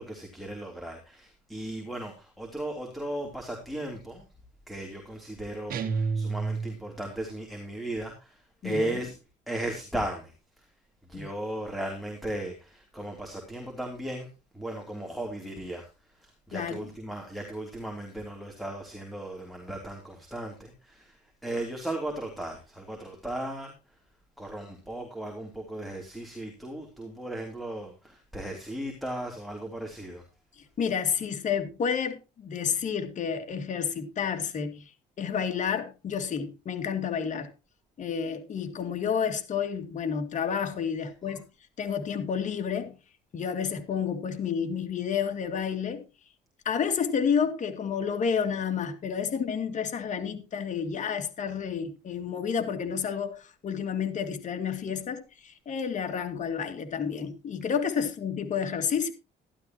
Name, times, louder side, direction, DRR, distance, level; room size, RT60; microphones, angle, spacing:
voice 1, 0.0-4.3 4.7-9.1 9.5-10.3 11.1-14.3 14.5-15.9 16.2-23.7 24.4-30.2 41.3-41.4, right 1 dB, ahead, 3.3 m, -36 dB
sound 1, 5.7-7.1, right 5 dB, 60° right, 1.8 m, -30 dB
voice 2, 8.6-9.0 11.1-11.3 16.5-16.8 30.6-34.9 35.2-37.5 38.0-41.5 41.8-43.0 43.3-46.0 46.6-59.1, left 7 dB, 45° left, 2.3 m, -30 dB
13.0 x 12.0 x 3.0 m
cardioid pair, 110°, 17 cm